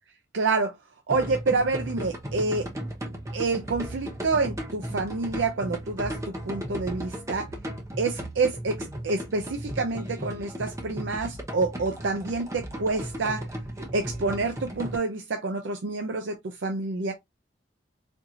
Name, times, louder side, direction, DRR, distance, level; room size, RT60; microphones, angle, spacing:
voice 1, 0.3-0.8 1.1-2.7 3.3-6.2 6.5-7.5 8.0-13.5 13.9-17.1, right 3 dB, 80° right, 0.5 m, -28 dB
sound 1, 1.1-15.0, right 1 dB, 15° right, 0.7 m, -36 dB
4.4 x 2.7 x 2.4 m
head